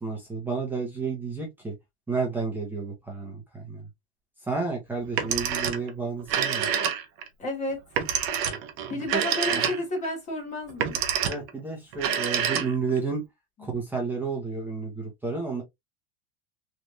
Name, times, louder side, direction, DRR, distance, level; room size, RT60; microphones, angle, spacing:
voice 1, 0.0-1.7 2.1-3.8 4.5-6.7 8.9-9.2 9.5-9.7 11.2-13.2 13.6-15.6, right 4 dB, 5° right, 0.7 m, -31 dB
Telephone, 5.0-5.9 6.2-7.3 7.9-10.0 10.7-11.5 11.9-13.0, right 8 dB, 45° right, 0.7 m, -27 dB
voice 2, 7.4-7.8 8.9-11.0 13.6-13.7, left 1 dB, 20° left, 1.1 m, -31 dB
3.2 x 2.4 x 2.6 m
supercardioid pair, 160°, 32 cm